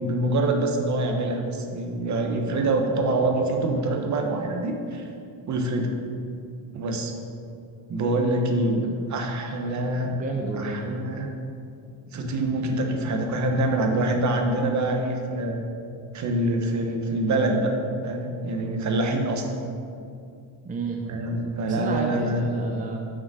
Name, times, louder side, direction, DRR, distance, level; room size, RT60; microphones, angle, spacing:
voice 1, 0.0-5.0 5.5-5.9 6.7-7.1 7.9-8.8 9.1-10.1 10.6-11.3 12.1-15.6 16.1-17.8 18.0-19.5 21.1-22.4, right 2 dB, 45° right, 3 dB, 1.0 m, -25 dB
voice 2, 10.0-10.9 20.6-21.0 21.7-23.0, right 3 dB, 20° right, 1 dB, 0.6 m, -31 dB
6.2 x 4.9 x 6.2 m, 2.5 s
cardioid pair, 125°, 39 cm